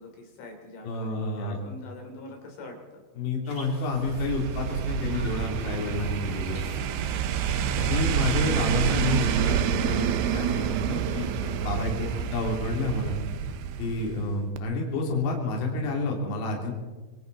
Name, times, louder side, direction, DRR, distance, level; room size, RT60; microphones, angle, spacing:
voice 1, 0.0-3.0 7.5-7.9 12.0-12.3, left 2 dB, 75° left, 1 dB, 5.8 m, -44 dB
voice 2, 0.8-1.6 3.2-6.7 7.9-13.2 13.8-16.7, left 2 dB, 55° left, -1 dB, 4.9 m, -29 dB
sound 1, 3.4-9.6, equal, 5° right, 4.1 m, -47 dB
sound 2, 3.9-14.3 14.6-14.7, right 8 dB, 75° right, 2.4 m, -28 dB
27.5 x 23.0 x 4.1 m, 1.3 s
omnidirectional pair, 5.7 m